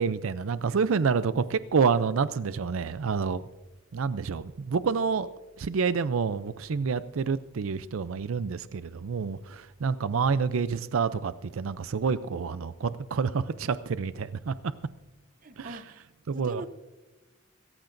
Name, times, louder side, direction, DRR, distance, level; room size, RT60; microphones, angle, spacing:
voice 1, 0.0-3.4 3.9-5.3 5.6-14.5 15.6-15.8 16.3-16.6, right 5 dB, 80° right, 14 dB, 0.5 m, -28 dB
voice 2, 15.4-16.1 16.3-16.7, right 1 dB, 40° right, 10 dB, 0.8 m, -41 dB
26.5 x 14.5 x 2.6 m, 1.1 s
head